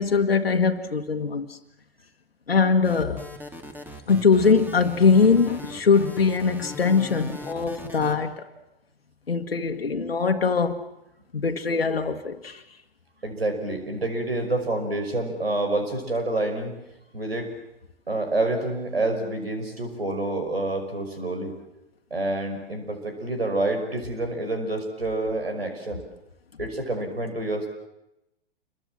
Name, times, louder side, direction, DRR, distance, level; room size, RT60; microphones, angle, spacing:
voice 1, 0.0-1.6 2.5-3.2 4.1-8.5 9.3-10.8 11.3-12.6, left 5 dB, 85° left, 1.6 m, -22 dB
sound 1, 2.8-8.1, equal, 5° right, 3.1 m, -39 dB
voice 2, 13.2-16.7 17.1-17.5 18.1-21.5 22.1-26.0 26.6-27.7, right 2 dB, 85° right, 5.6 m, -28 dB
28.0 x 23.5 x 7.5 m
figure-of-eight pair, 105°, 29 cm